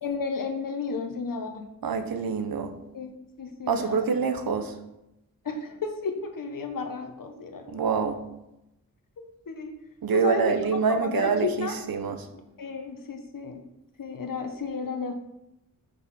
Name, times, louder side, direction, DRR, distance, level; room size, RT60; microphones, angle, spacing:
voice 1, 0.0-1.6 2.9-4.2 5.4-7.9 9.5-9.7 10.1-11.7 12.3-13.6 14.0-15.1, left 4 dB, 65° left, 5 dB, 1.3 m, -33 dB
voice 2, 1.8-2.7 3.7-4.7 7.7-8.2 10.0-12.3, right 5 dB, 80° right, 7 dB, 1.1 m, -26 dB
9.3 x 6.7 x 4.4 m, 0.88 s
wide cardioid pair, 120°, 35 cm